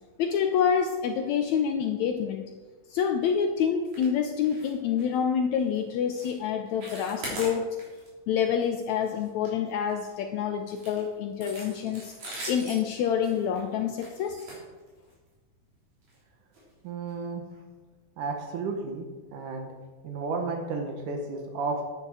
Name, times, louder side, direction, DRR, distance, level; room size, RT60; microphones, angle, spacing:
voice 1, 0.2-2.5 2.9-7.8 8.3-12.1 12.5-14.4, left 7 dB, 75° left, 5 dB, 1.8 m, -27 dB
sound 1, 3.8-4.1 4.4-4.7 5.0-5.2 5.6-5.8 6.2-6.4 6.7-8.1 8.4-8.6 9.0-10.1 10.7-15.3 16.0-16.2 16.5-16.6 17.1-17.2, right 1 dB, 65° right, 4.9 m, -41 dB
voice 2, 16.8-17.4 18.2-19.1 19.3-19.7 20.0-21.8, right 4 dB, 80° right, 3 dB, 2.6 m, -32 dB
10.5 x 9.3 x 4.8 m, 1.3 s
omnidirectional pair, 3.6 m